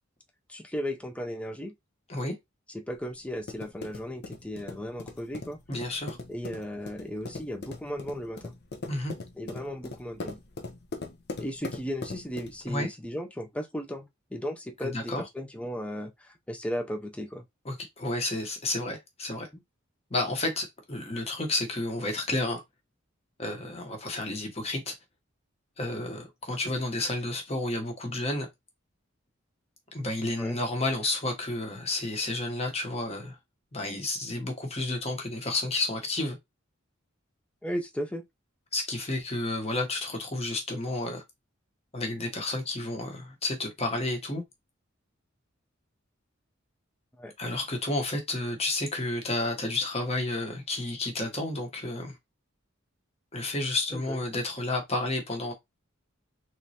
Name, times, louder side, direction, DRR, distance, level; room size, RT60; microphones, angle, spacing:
voice 1, 0.5-1.7 2.7-5.6 6.3-8.5 9.4-10.4 11.4-17.4 30.4-30.6 37.6-38.2 47.2-47.3 53.9-54.2, equal, 5° left, 0.5 m, -36 dB
sound 1, 2.9-12.7, left 3 dB, 55° left, 0.7 m, -41 dB
voice 2, 5.7-6.2 8.9-9.1 12.6-12.9 14.8-15.2 17.6-19.5 20.1-22.6 23.4-24.9 25.8-28.5 29.9-33.4 33.7-36.4 38.7-41.2 41.9-44.4 47.4-52.1 53.3-55.5, left 2 dB, 30° left, 1.1 m, -31 dB
3.7 x 3.1 x 2.8 m
head